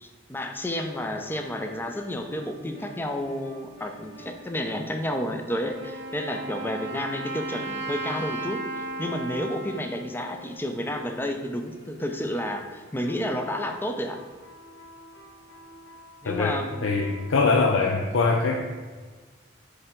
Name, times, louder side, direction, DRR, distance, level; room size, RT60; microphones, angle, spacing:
voice 1, 0.0-14.2 16.2-16.9, left 1 dB, 10° left, 5 dB, 0.5 m, -31 dB
sound 1, 0.8-17.9, left 2 dB, 60° left, 1.6 m, -48 dB
Wind instrument woodwind instrument, 5.6-11.4, right 2 dB, 60° right, 0.7 m, -36 dB
voice 2, 16.2-18.6, left 3 dB, 75° left, 0 dB, 0.6 m, -23 dB
7.7 x 3.4 x 4.4 m, 1.5 s
head